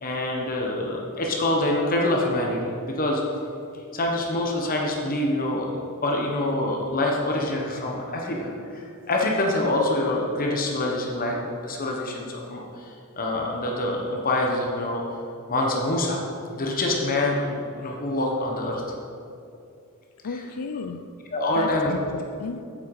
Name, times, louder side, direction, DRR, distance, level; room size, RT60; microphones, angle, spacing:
voice 1, 0.0-3.2 3.9-5.7 6.0-11.4 11.6-15.0 15.5-16.2 16.5-18.8 21.3-21.9, left 1 dB, 40° left, 1.1 m, -25 dB
voice 2, 20.2-21.1 21.5-22.6, left 4 dB, 90° left, 0.5 m, -34 dB
9.3 x 7.6 x 4.8 m
head